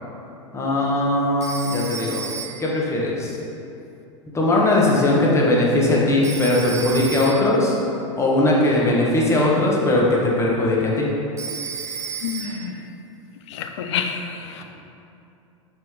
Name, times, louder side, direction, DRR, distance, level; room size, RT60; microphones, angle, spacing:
voice 1, 0.5-2.3 2.6-3.4 4.3-7.8 8.2-11.1, left 1 dB, 15° left, -4 dB, 1.2 m, -19 dB
Telephone, 1.4-2.8 6.2-7.6 11.4-12.8, right 6 dB, 20° right, 0.6 m, -33 dB
voice 2, 12.2-12.9 13.5-14.6, left 7 dB, 60° left, 6 dB, 0.5 m, -29 dB
5.9 x 4.7 x 3.6 m, 2.7 s
figure-of-eight pair, 90°, 17 cm